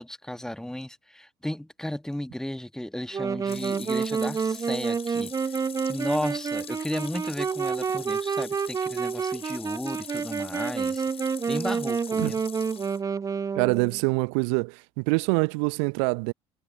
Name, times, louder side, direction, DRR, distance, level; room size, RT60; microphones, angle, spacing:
voice 1, 0.0-5.6 5.8-11.1 11.5-12.4, left 1 dB, 5° left, 1.4 m, -34 dB
Wind instrument woodwind instrument, 3.1-14.0, right 6 dB, 20° right, 0.7 m, -29 dB
sound 1, 3.5-13.0, left 8 dB, 40° left, 7.5 m, -44 dB
voice 2, 13.6-16.3, right 39 dB, 60° right, 0.8 m, -25 dB
figure-of-eight pair, 60°, 16 cm